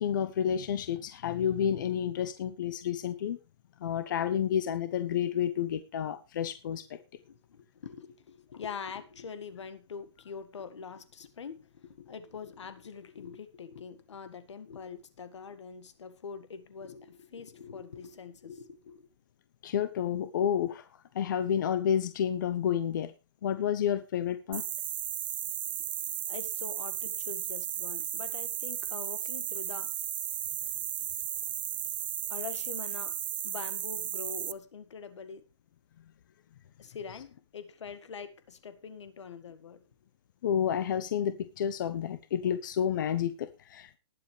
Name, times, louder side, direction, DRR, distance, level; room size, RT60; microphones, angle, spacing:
voice 1, 0.0-3.4 3.8-7.0 19.6-20.8 21.1-23.1 23.4-24.6 40.4-44.0, left 9 dB, 40° left, 0.9 m, -30 dB
voice 2, 7.2-19.1 26.1-30.0 32.3-33.2 33.4-35.5 36.8-39.9, left 6 dB, 75° left, 1.8 m, -44 dB
sound 1, 24.5-34.5, right 10 dB, 45° right, 0.5 m, -35 dB
19.5 x 7.5 x 3.3 m
hypercardioid pair, 175°, 15 cm